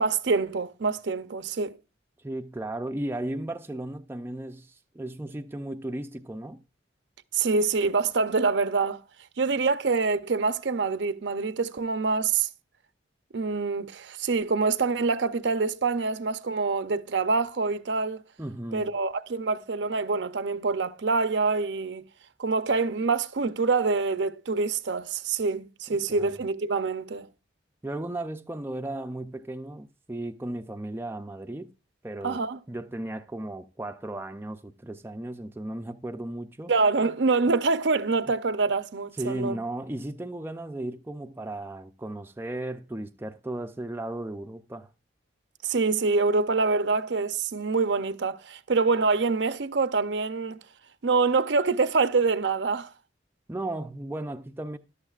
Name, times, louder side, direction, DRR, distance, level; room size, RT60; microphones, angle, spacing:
voice 1, 0.0-1.8 7.3-9.0 9.4-12.5 13.3-18.2 18.7-22.0 22.4-27.3 32.2-32.6 36.7-39.6 45.6-50.6 51.0-52.9, right 4 dB, 65° right, 0.6 m, -25 dB
voice 2, 2.2-6.6 18.4-18.9 26.1-26.3 27.8-31.7 32.0-32.4 32.7-36.7 39.2-44.9 53.5-54.8, right 1 dB, 10° right, 0.4 m, -35 dB
13.5 x 11.5 x 2.4 m
head